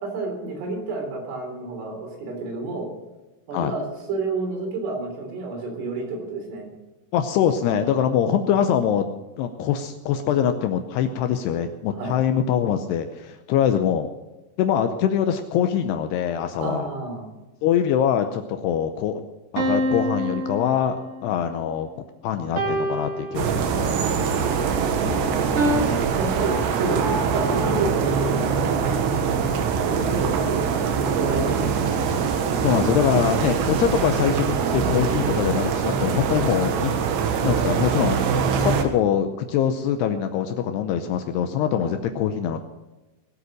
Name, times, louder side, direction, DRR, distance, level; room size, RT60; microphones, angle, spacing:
voice 1, 0.0-2.9 3.5-6.7 8.2-8.5 11.9-12.1 16.6-17.2 25.0-29.0 29.8-31.7 41.8-42.0, right 3 dB, 90° right, 2 dB, 6.0 m, -30 dB
voice 2, 7.1-9.1 9.4-14.1 14.6-16.9 17.6-19.2 19.5-21.9 22.2-24.0 25.1-25.5 32.6-36.9 37.4-38.4 38.6-42.6, left 9 dB, 80° left, 7 dB, 2.4 m, -23 dB
sound 1, 19.6-21.3 22.6-24.0 25.6-25.8, equal, 45° right, 2.2 m, -26 dB
sound 2, 23.4-38.8, right 6 dB, 75° right, 3.3 m, -23 dB
20.5 x 8.1 x 6.4 m, 1.1 s
omnidirectional pair, 5.5 m